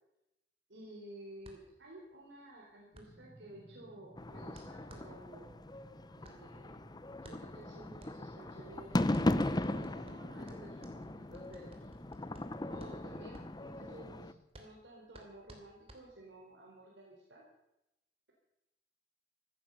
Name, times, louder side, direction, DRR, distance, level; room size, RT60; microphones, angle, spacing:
voice 1, 0.7-5.5 6.2-6.8 7.2-9.1 9.3-11.9 12.7-17.4, right 1 dB, 85° right, -3 dB, 3.8 m, -53 dB
sound 1, 1.4-16.5, right 1 dB, 35° right, 3.0 m, -59 dB
sound 2, 2.9-14.4, right 1 dB, 15° right, 2.2 m, -58 dB
sound 3, 4.2-14.3, left 1 dB, 25° left, 0.7 m, -38 dB
15.0 x 13.5 x 6.8 m, 0.88 s
head